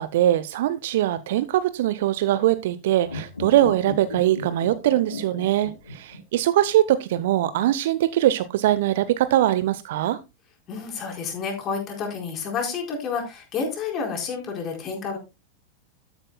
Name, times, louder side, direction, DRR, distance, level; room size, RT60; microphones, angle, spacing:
voice 1, 0.0-10.2, right 13 dB, 55° right, 15 dB, 0.6 m, -22 dB
sound 1, 3.0-6.4 6.7-6.8, left 2 dB, 80° left, 3.0 m, -35 dB
voice 2, 10.7-15.2, left 5 dB, 30° left, 2 dB, 4.4 m, -30 dB
13.0 x 9.8 x 2.2 m, 0.24 s
figure-of-eight pair, 90°, 0 cm